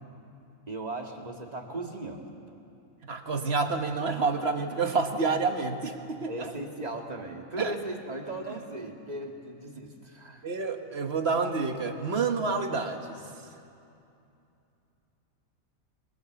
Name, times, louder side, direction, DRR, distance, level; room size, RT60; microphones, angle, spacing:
voice 1, 0.7-2.3 6.3-10.5, right 2 dB, 30° right, 2 dB, 2.0 m, -38 dB
voice 2, 3.0-6.5 7.6-7.7 8.5-8.6 10.4-13.2, right 4 dB, 50° right, 5 dB, 1.7 m, -28 dB
25.0 x 22.0 x 7.0 m, 2.7 s
omnidirectional pair, 1.4 m